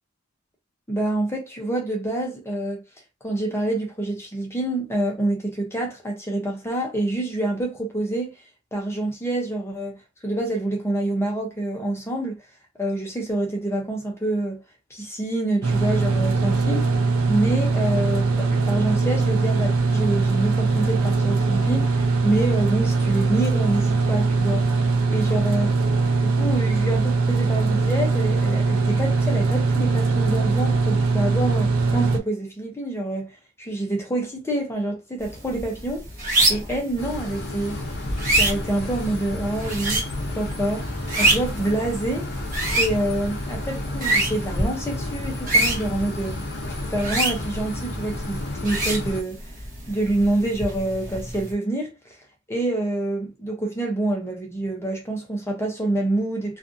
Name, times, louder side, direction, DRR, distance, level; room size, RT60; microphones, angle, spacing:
voice 1, 0.9-2.8 3.2-8.4 8.7-12.4 12.8-14.6 14.9-24.7 25.1-25.8 26.2-33.3 33.6-36.1 36.5-37.8 38.3-40.1 40.3-40.9 41.2-42.4 42.7-46.4 46.9-49.4 49.9-52.2 52.5-56.6, right 1 dB, 10° left, 0.6 m, -27 dB
sound 1, 15.6-32.2, right 3 dB, 70° right, 0.5 m, -21 dB
sound 2, 35.2-51.5, right 2 dB, 40° right, 1.0 m, -27 dB
sound 3, 37.0-49.2, left 1 dB, 50° left, 0.6 m, -32 dB
2.5 x 2.4 x 2.6 m
head